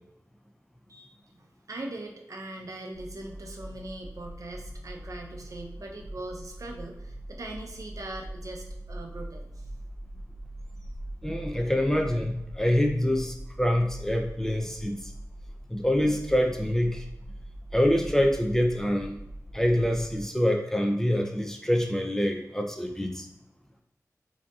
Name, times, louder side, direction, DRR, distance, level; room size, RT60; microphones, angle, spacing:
voice 1, 0.9-9.7, right 2 dB, 65° right, 1 dB, 0.6 m, -41 dB
sound 1, 2.9-20.3, right 1 dB, 60° left, 0.5 m, -42 dB
voice 2, 11.2-15.0 15.7-17.1 17.7-19.2 19.5-23.3, equal, 10° left, 2 dB, 0.5 m, -25 dB
4.9 x 2.8 x 2.3 m, 0.88 s
wide cardioid pair, 80°, 6 cm